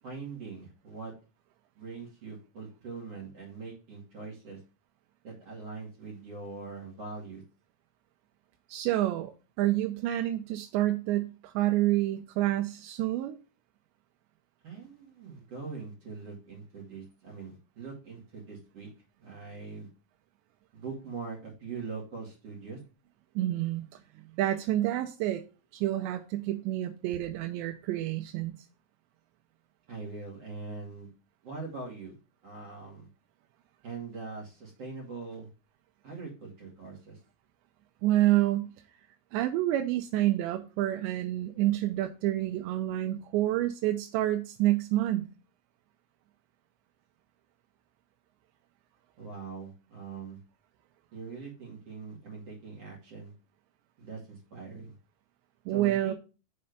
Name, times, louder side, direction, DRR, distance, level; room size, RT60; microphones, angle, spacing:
voice 1, 0.0-1.1 1.8-4.6 5.2-7.4 14.6-18.9 19.2-19.9 20.7-22.8 29.9-31.1 31.4-32.1 32.4-33.1 33.8-35.5 36.0-37.2 49.2-50.4 51.1-53.3 54.0-54.9 55.7-56.1, right 4 dB, 40° right, 3.1 m, -42 dB
voice 2, 8.7-9.3 9.6-13.4 23.4-23.9 24.4-25.4 25.7-28.6 38.0-38.7 39.3-45.3 55.7-56.1, right 14 dB, 90° right, 2.9 m, -28 dB
6.8 x 4.2 x 6.6 m
omnidirectional pair, 4.9 m